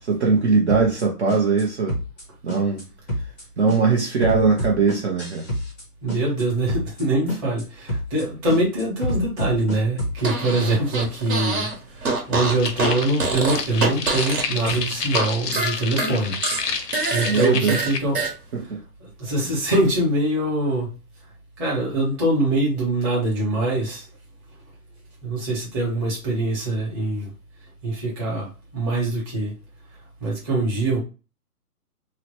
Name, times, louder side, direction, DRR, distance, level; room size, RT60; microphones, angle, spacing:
voice 1, 0.0-2.0 2.4-2.8 3.6-5.5 17.2-17.9 18.5-18.8, right 4 dB, 45° right, 0.6 m, -20 dB
sound 1, 0.7-1.0 1.3-2.2 2.5-2.8 3.1-3.4 3.7-5.8 6.1-6.4 6.7-7.0 7.3-7.6 7.9-8.2 8.5-10.2, equal, 5° left, 0.5 m, -28 dB
voice 2, 6.0-11.7 11.9-16.4 16.6-18.2 19.2-20.9 21.6-24.0 25.2-27.3 27.8-29.5 30.2-31.0, right 2 dB, 15° right, 0.9 m, -24 dB
Fart, 10.2-11.7 12.0-15.3 15.5-18.3, right 3 dB, 60° right, 1.2 m, -25 dB
sound 2, 12.6-18.0, left 6 dB, 90° left, 0.7 m, -30 dB
2.9 x 2.0 x 2.9 m
hypercardioid pair, 150°, 47 cm